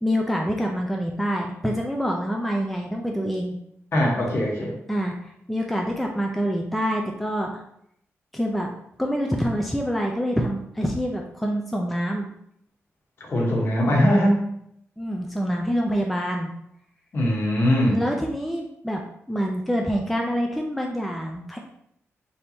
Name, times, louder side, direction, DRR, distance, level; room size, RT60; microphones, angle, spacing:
voice 1, 0.0-3.6 4.9-7.6 8.3-8.7 9.0-12.2 15.0-16.5 17.9-19.0 19.3-21.6, equal, ahead, 0 dB, 0.4 m, -26 dB
voice 2, 3.9-4.8 13.2-14.4 17.1-18.0, equal, 50° left, -2 dB, 1.1 m, -21 dB
3.4 x 2.8 x 4.2 m, 0.74 s
wide cardioid pair, 170°, 5 cm